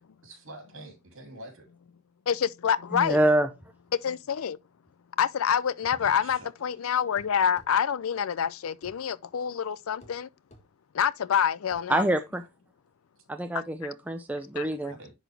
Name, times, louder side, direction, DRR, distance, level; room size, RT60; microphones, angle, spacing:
voice 1, 0.2-1.7 3.2-3.4 6.0-6.5 14.9-15.1, right 1 dB, 60° right, 2.7 m, -46 dB
voice 2, 2.3-3.2 4.0-4.6 5.2-10.3 10.9-12.0 14.6-14.7, left 8 dB, 70° left, 0.4 m, -27 dB
voice 3, 2.9-3.5 11.9-12.4 13.3-14.9, right 1 dB, 5° right, 0.5 m, -26 dB
sound 1, 6.3-6.5 7.2-7.7 8.8-9.0 10.0-10.2 10.5-10.7 11.7-11.9, equal, 30° left, 1.5 m, -53 dB
10.5 x 4.1 x 3.3 m
head